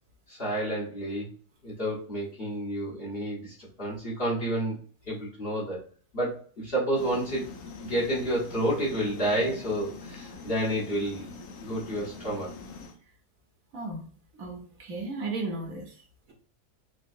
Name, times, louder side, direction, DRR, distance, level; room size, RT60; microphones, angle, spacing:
voice 1, 0.3-1.3 1.6-4.7 5.0-5.8 6.1-7.5 7.8-11.3 11.6-12.5, right 1 dB, 40° left, -6 dB, 1.5 m, -30 dB
sound 1, 7.0-13.0, left 3 dB, 65° left, 0.9 m, -44 dB
voice 2, 13.7-14.1 14.4-15.9, right 3 dB, 65° right, 1 dB, 1.2 m, -35 dB
4.5 x 2.4 x 2.5 m, 0.43 s
omnidirectional pair, 1.6 m